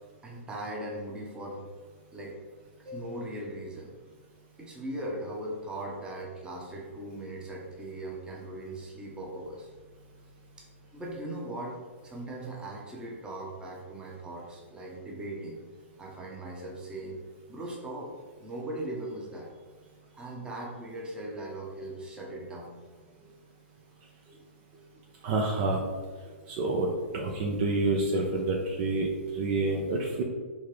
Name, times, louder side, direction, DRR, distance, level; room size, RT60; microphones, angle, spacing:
voice 1, 0.2-1.6 2.1-2.4 2.8-3.9 4.6-9.7 10.9-15.6 16.0-17.2 17.5-18.1 18.4-19.6 20.1-22.8 23.2-23.3 24.3-24.4 24.7-24.8 26.2-26.4, right 1 dB, 10° right, -3 dB, 1.0 m, -39 dB
voice 2, 25.2-25.8 26.5-26.9 27.1-30.2, right 2 dB, 45° right, 0 dB, 0.7 m, -28 dB
4.4 x 3.6 x 3.3 m, 1.5 s
hypercardioid pair, 125°, 7 cm